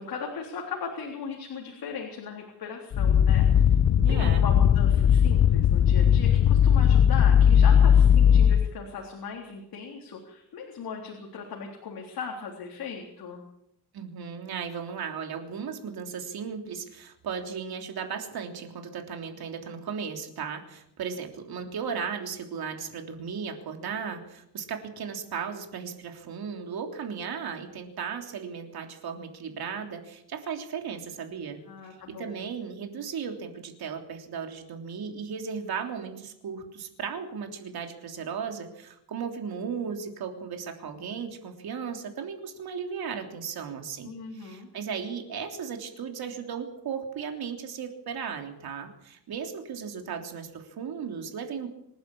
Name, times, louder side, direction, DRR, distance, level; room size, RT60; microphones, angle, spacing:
voice 1, 0.0-3.8 4.1-13.4 31.7-32.4 44.0-44.7, left 5 dB, 60° left, 0 dB, 3.7 m, -38 dB
sound 1, 2.9-8.7, left 8 dB, 40° left, 0.7 m, -19 dB
voice 2, 4.0-4.4 13.9-31.6 32.1-51.7, right 6 dB, 65° right, 4 dB, 3.4 m, -36 dB
26.5 x 11.5 x 8.7 m, 0.80 s
cardioid pair, 140°, 40 cm